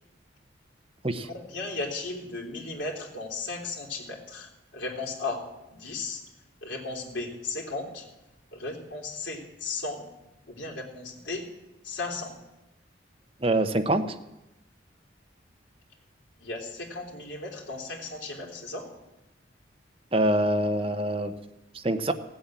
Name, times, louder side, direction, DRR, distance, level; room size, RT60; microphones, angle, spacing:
voice 1, 1.2-5.4 5.7-6.2 6.6-8.1 8.5-10.0 10.5-11.5 11.8-12.3 16.4-18.9, left 3 dB, 80° left, -2 dB, 3.7 m, -35 dB
voice 2, 13.4-14.1 20.1-21.3 21.7-22.1, right 1 dB, 30° right, 7 dB, 1.0 m, -25 dB
16.5 x 8.0 x 9.0 m, 0.93 s
head